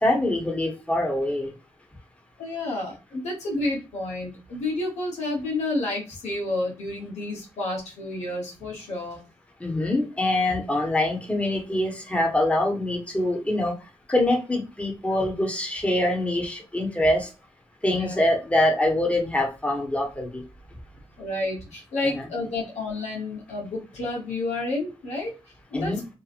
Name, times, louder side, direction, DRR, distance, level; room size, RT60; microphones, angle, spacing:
voice 1, 0.0-1.5 9.6-13.7 14.1-17.3 17.8-20.4 22.0-22.3 25.7-26.0, left 1 dB, 10° left, 0 dB, 1.2 m, -24 dB
voice 2, 2.4-9.2 17.9-18.2 21.2-25.3 25.7-25.9, left 2 dB, 90° left, -2 dB, 1.0 m, -30 dB
2.9 x 2.5 x 2.5 m, 0.31 s
cardioid pair, 50°, 11 cm